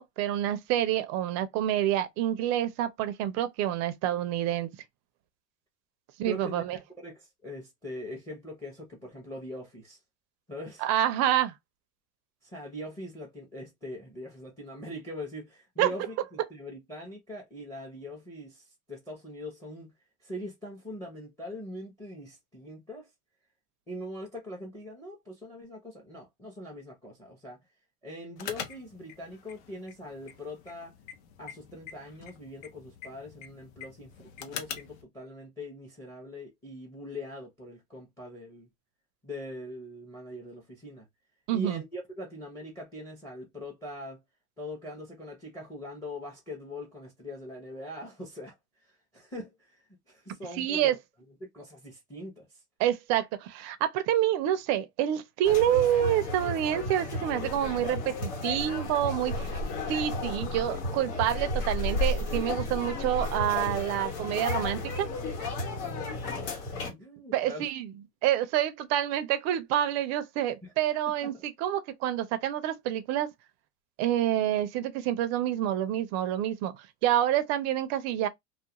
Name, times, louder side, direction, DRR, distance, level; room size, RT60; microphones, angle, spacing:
voice 1, 0.0-4.7 6.2-6.8 10.8-11.5 15.8-15.9 41.5-41.8 50.6-51.0 52.8-59.6 59.9-65.1 67.3-67.9 68.2-73.3 74.0-76.7 77.0-78.3, right 11 dB, 40° right, 0.4 m, -27 dB
voice 2, 6.2-6.7 7.0-10.0 10.5-10.8 12.4-19.9 20.2-23.1 23.9-27.6 28.0-30.9 31.4-38.7 39.2-41.1 41.5-44.2 44.6-48.5 48.8-50.9 51.4-52.6 66.2-66.5 66.9-67.7 70.6-70.7 71.2-71.4, left 1 dB, 5° left, 0.6 m, -42 dB
sound 1, 28.4-35.0, left 8 dB, 65° left, 0.8 m, -44 dB
sound 2, 55.4-66.9, left 2 dB, 80° left, 1.3 m, -33 dB
2.3 x 2.2 x 2.8 m
supercardioid pair, 135°, 46 cm